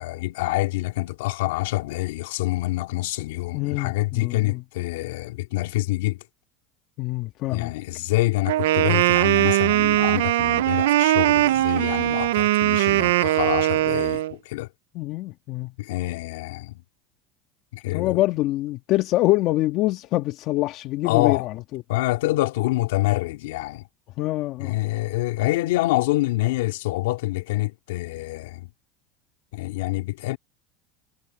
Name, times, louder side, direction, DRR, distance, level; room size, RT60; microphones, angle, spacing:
voice 1, 0.0-6.2 7.5-14.7 15.8-16.8 17.7-18.2 21.0-21.5 21.9-23.8 24.6-28.7 29.5-30.4, left 18 dB, 80° left, 2.8 m, -26 dB
voice 2, 3.5-4.6 7.0-7.7 14.9-15.7 17.9-21.8 24.2-24.7, left 17 dB, 55° left, 1.6 m, -25 dB
Wind instrument woodwind instrument, 8.5-14.3, right 15 dB, 85° right, 0.5 m, -20 dB
supercardioid pair, 105°, 0 cm